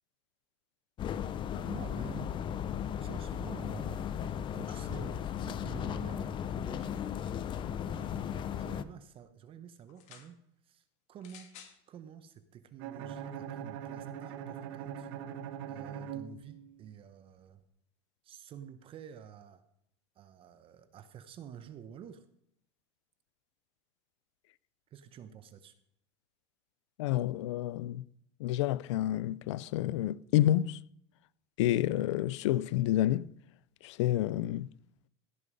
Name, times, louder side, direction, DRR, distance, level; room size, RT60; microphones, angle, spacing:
sound 1, 1.0-8.8, left 9 dB, 35° left, 0.6 m, -36 dB
voice 1, 1.5-2.4 3.0-7.1 7.8-10.4 10.6-11.5 11.9-15.1 15.7-17.6 18.2-19.6 20.2-22.2 24.9-25.8, right 8 dB, 40° right, 0.9 m, -49 dB
sound 2, 9.9-10.3 11.2-11.8 12.7-12.8, left 8 dB, 50° left, 2.1 m, -53 dB
Bowed string instrument, 12.8-16.9, right 9 dB, 70° right, 1.2 m, -41 dB
voice 2, 27.0-28.0 28.4-30.8 31.6-33.3 33.8-34.7, left 13 dB, 85° left, 0.5 m, -29 dB
16.0 x 6.6 x 5.3 m
supercardioid pair, 125°, 15 cm